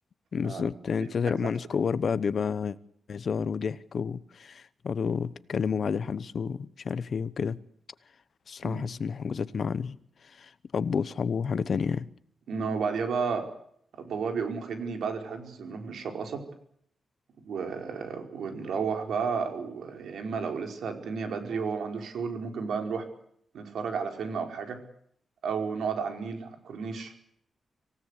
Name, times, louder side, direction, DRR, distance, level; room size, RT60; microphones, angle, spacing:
voice 1, 0.3-2.8 3.1-7.6 8.5-10.0 10.4-12.1, left 6 dB, 45° left, 1.0 m, -30 dB
voice 2, 12.5-13.5 14.0-16.4 17.4-23.0 23.5-24.8 25.4-27.1, right 5 dB, 80° right, 4.9 m, -32 dB
26.5 x 17.5 x 8.3 m
wide cardioid pair, 180°, 0 cm